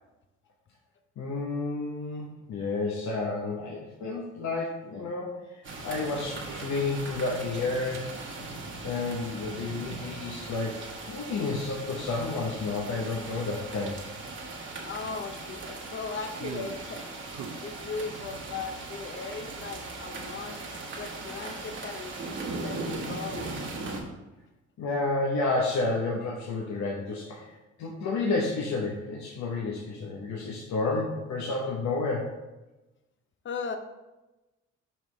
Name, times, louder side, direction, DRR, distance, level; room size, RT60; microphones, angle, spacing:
voice 1, 1.2-8.1 8.8-14.0 24.8-27.5 27.8-32.3, left 3 dB, 65° left, -2 dB, 0.9 m, -31 dB
sound 1, 5.6-24.0, right 2 dB, 40° right, 1.3 m, -39 dB
sound 2, 6.1-6.8 7.4-8.1 9.6-9.7 12.4-12.5 12.7-12.8 13.3-13.4 15.0-16.9 17.3-18.8, right 7 dB, 65° right, 0.6 m, -44 dB
voice 2, 14.8-17.1 17.6-20.6 21.0-23.5 33.4-33.8, left 4 dB, 40° left, 8 dB, 0.7 m, -38 dB
5.5 x 5.3 x 3.2 m, 1.1 s
cardioid pair, 90°, 30 cm